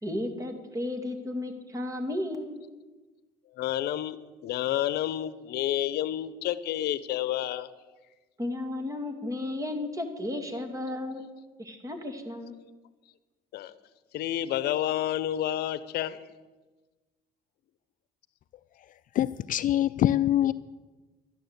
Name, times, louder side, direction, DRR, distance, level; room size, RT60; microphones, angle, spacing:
voice 1, 0.0-2.6 8.4-11.3 11.6-12.5, left 1 dB, 20° right, 6 dB, 2.3 m, -33 dB
voice 2, 3.5-4.2 4.4-7.7 13.5-13.8 14.1-16.2, left 12 dB, 70° left, 15 dB, 0.8 m, -29 dB
voice 3, 19.1-20.5, left 12 dB, 55° left, 15 dB, 0.4 m, -24 dB
12.0 x 11.5 x 8.1 m, 1.2 s
cardioid pair, 110°, 17 cm